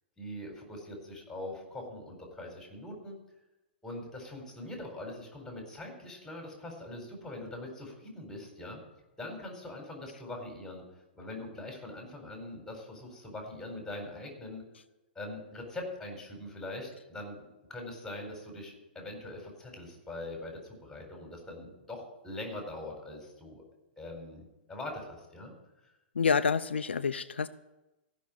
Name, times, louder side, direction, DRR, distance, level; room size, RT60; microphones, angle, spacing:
voice 1, 0.2-3.1 3.8-8.8 9.2-10.8 11.1-14.6 15.1-17.4 17.7-23.6 24.0-25.5, left 1 dB, 5° left, 1 dB, 4.3 m, -42 dB
voice 2, 26.1-27.5, left 5 dB, 85° left, 12 dB, 0.5 m, -28 dB
15.0 x 6.3 x 8.5 m, 1.0 s
hypercardioid pair, 115°, 6 cm